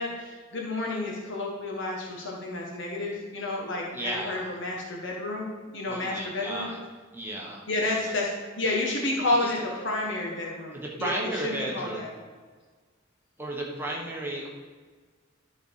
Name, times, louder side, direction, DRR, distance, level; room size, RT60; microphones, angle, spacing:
voice 1, 0.0-5.5 5.7-6.7 7.7-12.1, left 2 dB, 65° left, -2 dB, 1.5 m, -30 dB
voice 2, 3.9-4.5 5.9-6.8 7.1-7.6 9.4-9.5 10.7-12.0 13.4-14.5, right 1 dB, 10° right, -3 dB, 1.2 m, -33 dB
12.5 x 4.2 x 4.8 m, 1.5 s
head